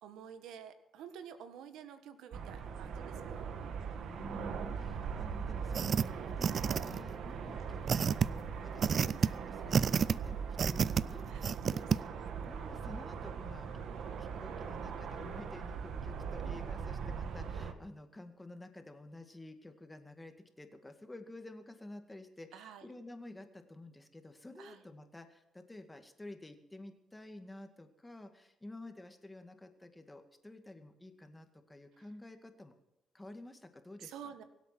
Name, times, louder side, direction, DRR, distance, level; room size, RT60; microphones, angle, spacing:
voice 1, 0.0-3.5 6.1-6.3 7.4-7.6 9.0-9.4 11.3-11.7 16.4-16.7 22.5-22.9 24.6-24.8 32.0-32.1 34.0-34.4, right 8 dB, 90° right, 10 dB, 1.5 m, -51 dB
sound 1, 2.3-17.7, right 6 dB, 70° right, 1.6 m, -40 dB
voice 2, 4.0-13.7 14.2-32.7 33.1-34.1, left 2 dB, 15° left, 6 dB, 2.1 m, -51 dB
sound 2, 5.7-6.0 6.4-7.1 7.9-8.3 8.8-9.3 9.7-10.1 10.6-11.0 11.4-12.0, right 7 dB, 50° right, 0.4 m, -29 dB
23.0 x 8.3 x 6.1 m, 0.91 s
cardioid pair, 90°, 0 cm